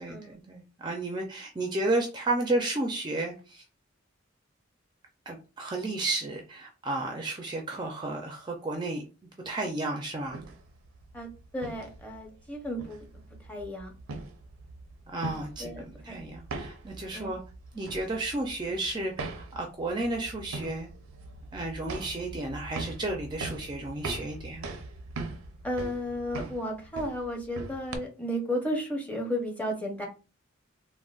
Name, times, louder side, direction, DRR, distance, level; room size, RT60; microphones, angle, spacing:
voice 1, 0.0-3.6 5.3-9.1 9.5-10.4 15.1-17.4 17.7-20.9 21.5-24.8, right 2 dB, 20° right, 2 dB, 0.4 m, -32 dB
sound 1, 10.2-28.0, right 3 dB, 85° right, 0.5 m, -42 dB
voice 2, 11.1-13.0 13.5-13.9 15.6-16.2 17.1-17.3 25.6-30.1, equal, 5° left, 0 dB, 0.7 m, -33 dB
3.7 x 2.1 x 2.3 m, 0.33 s
head